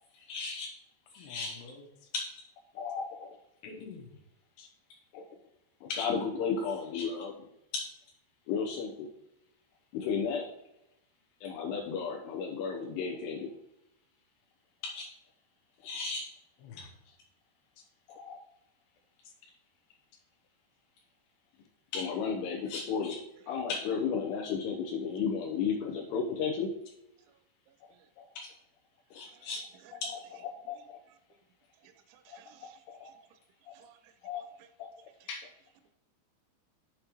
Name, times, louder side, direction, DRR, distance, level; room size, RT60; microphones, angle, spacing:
voice 1, 0.1-0.7 1.1-1.6 2.1-2.3 2.8-3.4 5.1-5.3 5.8-7.5 7.7-7.9 8.5-9.1 9.9-10.5 11.4-13.5 14.8-15.1 15.8-16.2 18.1-18.4 21.9-23.2 23.5-26.7 28.2-28.5 29.1-29.6 29.9-31.0 32.3-33.1 33.7-33.8 34.2-34.4 34.8-34.9 35.3-35.5, left 5 dB, 90° left, 0 dB, 2.4 m, -34 dB
voice 2, 1.2-2.1 3.6-4.2 4.6-4.7 16.6-17.2 19.2-19.3, left 4 dB, 70° left, 2 dB, 2.9 m, -49 dB
voice 3, 27.7-28.1 29.3-29.5 31.8-33.3 33.7-34.7 35.2-35.3, right 10 dB, 80° right, 10 dB, 2.8 m, -61 dB
8.7 x 6.6 x 3.0 m, 0.86 s
omnidirectional pair, 5.5 m